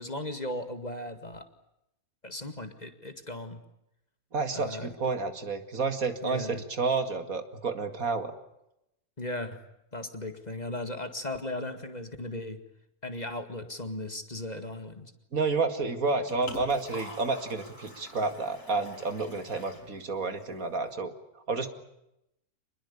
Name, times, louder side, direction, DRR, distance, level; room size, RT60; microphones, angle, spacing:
voice 1, 0.0-1.5 2.2-3.6 4.5-4.9 6.2-6.6 9.2-9.6 9.9-12.6 13.0-15.1, left 1 dB, 30° left, 8 dB, 2.2 m, -37 dB
voice 2, 4.3-8.3 15.3-21.1 21.5-21.7, right 4 dB, 70° right, 8 dB, 2.7 m, -30 dB
Liquid, 15.9-20.9, left 2 dB, 65° left, 5.8 m, -47 dB
26.5 x 21.0 x 8.5 m, 0.84 s
omnidirectional pair, 1.5 m